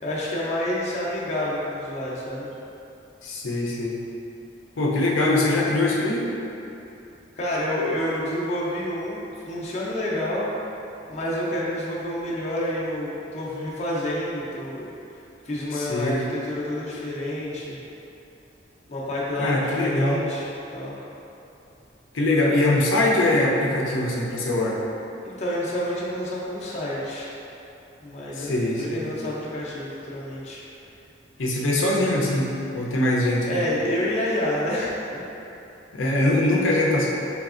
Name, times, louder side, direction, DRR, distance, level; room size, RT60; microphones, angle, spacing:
voice 1, 0.0-2.5 7.4-9.2 9.5-10.5 11.1-14.9 15.4-17.9 18.9-20.5 20.7-21.0 25.2-27.3 28.0-28.5 28.8-30.6 33.5-35.2 36.1-36.2, left 1 dB, 35° left, -6 dB, 0.5 m, -28 dB
voice 2, 3.2-4.0 4.8-6.3 15.7-16.2 19.4-20.2 22.1-24.8 28.3-29.1 31.4-33.6 35.9-37.1, left 1 dB, 85° left, -4 dB, 0.6 m, -22 dB
4.1 x 3.4 x 2.4 m, 2.8 s
head